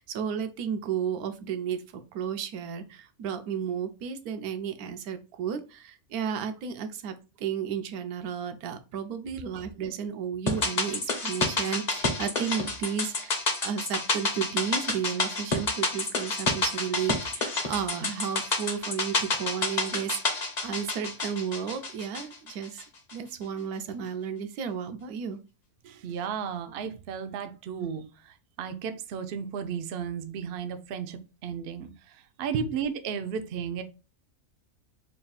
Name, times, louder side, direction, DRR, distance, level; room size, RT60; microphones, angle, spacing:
voice 1, 0.0-22.8 23.1-25.4 25.8-26.0, right 7 dB, 90° right, 1.1 m, -33 dB
sound 1, 10.5-22.8 23.1-23.2, left 3 dB, 40° left, 0.7 m, -29 dB
voice 2, 26.0-33.8, right 7 dB, 70° right, 0.6 m, -34 dB
3.4 x 2.4 x 3.9 m
omnidirectional pair, 1.5 m